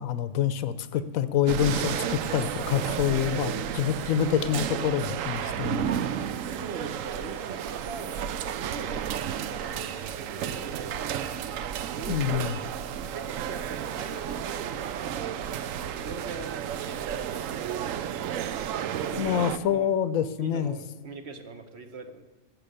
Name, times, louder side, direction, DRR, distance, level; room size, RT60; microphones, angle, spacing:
voice 1, 0.0-5.9 12.1-12.6 19.2-20.7, left 9 dB, 80° left, 14 dB, 1.1 m, -26 dB
sound 1, 1.5-19.6, right 9 dB, 75° right, 1.0 m, -32 dB
voice 2, 3.1-3.6 6.4-8.1 8.5-11.3 11.9-12.5 13.1-15.5 15.9-17.9 18.8-19.4 19.7-19.9 20.4-22.2, right 4 dB, 55° right, 7 dB, 1.2 m, -41 dB
13.0 x 7.6 x 6.6 m, 1.2 s
omnidirectional pair, 1.4 m